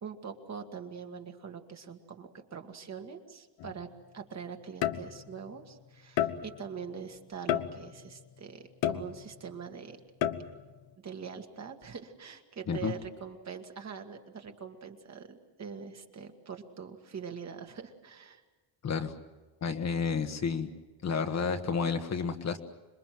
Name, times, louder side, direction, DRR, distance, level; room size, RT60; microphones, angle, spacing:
voice 1, 0.0-10.0 11.0-18.4, right 6 dB, 35° right, 5 dB, 1.9 m, -43 dB
sound 1, 3.6-3.8 4.8-5.4 6.2-6.7 7.5-8.1 8.8-9.5 10.2-10.7, left 11 dB, 70° left, 1.2 m, -31 dB
voice 2, 19.6-20.7 21.0-22.6, left 5 dB, 35° left, 7 dB, 1.4 m, -30 dB
27.0 x 21.5 x 7.7 m, 1.2 s
cardioid pair, 140°, 46 cm